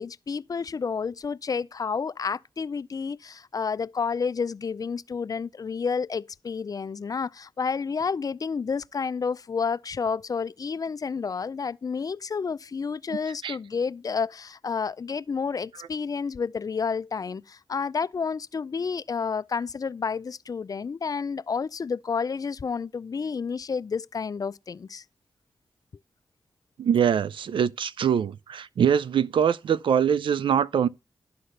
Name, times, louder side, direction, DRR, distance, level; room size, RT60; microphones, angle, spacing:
voice 1, 0.0-25.0, left 5 dB, 45° left, 0.4 m, -30 dB
voice 2, 26.8-30.9, right 8 dB, 80° right, 0.4 m, -23 dB
11.0 x 4.1 x 6.5 m
cardioid pair, 50°, 8 cm